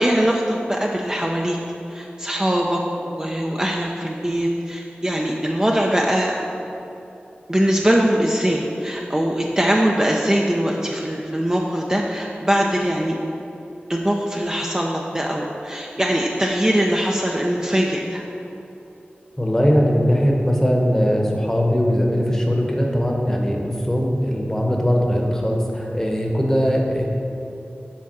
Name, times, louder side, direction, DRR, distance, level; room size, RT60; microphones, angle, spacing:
voice 1, 0.0-1.6 1.9-6.3 7.5-13.2 13.9-18.2, equal, 20° right, -1 dB, 0.6 m, -21 dB
voice 2, 19.4-27.1, equal, 10° left, 0 dB, 1.0 m, -20 dB
7.3 x 3.5 x 6.0 m, 2.9 s
wide cardioid pair, 50°, 4 cm